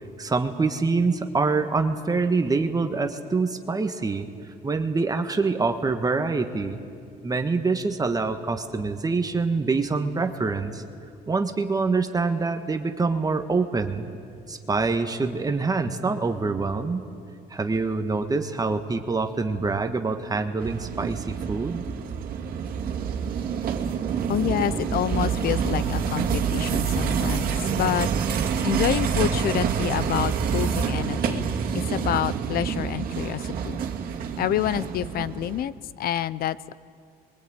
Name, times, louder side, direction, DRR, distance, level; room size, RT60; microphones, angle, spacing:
voice 1, 0.2-4.3 4.6-6.8 7.2-10.8 11.3-14.1 14.5-17.0 17.5-21.8, right 4 dB, 20° right, 6 dB, 1.5 m, -25 dB
sound 1, 20.6-35.6, right 7 dB, 60° right, 2.3 m, -27 dB
voice 2, 24.3-28.1 28.6-31.6 31.9-33.8 34.4-36.7, left 11 dB, 65° left, 18 dB, 0.8 m, -28 dB
25.5 x 22.5 x 9.0 m, 2.3 s
cardioid pair, 110°, 17 cm